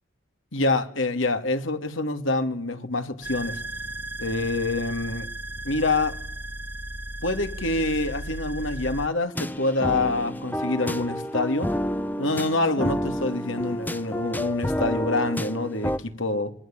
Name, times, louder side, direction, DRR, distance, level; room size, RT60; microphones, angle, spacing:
voice 1, 0.5-3.6 4.2-5.3 5.6-6.2 7.2-11.7 12.2-16.5, left 2 dB, 75° left, 2.5 m, -26 dB
sound 1, 3.2-9.1, right 1 dB, 10° right, 1.6 m, -35 dB
sound 2, 9.4-16.0, equal, 10° left, 1.0 m, -29 dB
27.0 x 22.0 x 8.9 m
head